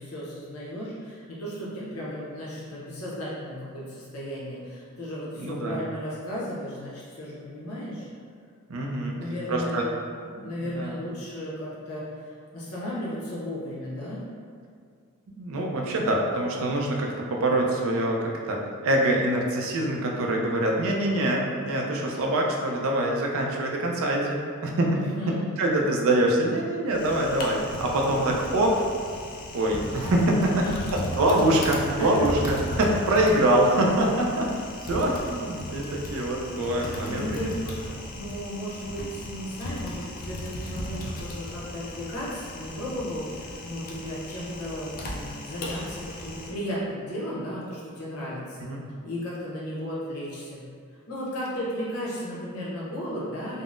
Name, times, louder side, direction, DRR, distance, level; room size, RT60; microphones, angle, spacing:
voice 1, 0.0-8.1 9.0-9.8 10.3-14.2 24.9-25.4 30.4-30.9 32.0-32.1 37.1-37.5 38.1-48.7 49.0-50.6 51.1-53.6, equal, 75° left, -7 dB, 0.7 m, -35 dB
voice 2, 5.4-5.8 8.7-9.2 9.5-9.8 10.6-11.0 15.4-24.9 25.6-28.7 29.5-30.4 30.7-30.8 31.2-37.3 48.7-48.8, right 1 dB, 65° right, -1 dB, 0.4 m, -24 dB
Typing, 26.9-46.5, left 1 dB, 40° left, 0.4 m, -36 dB
3.6 x 2.0 x 2.4 m, 2.1 s
head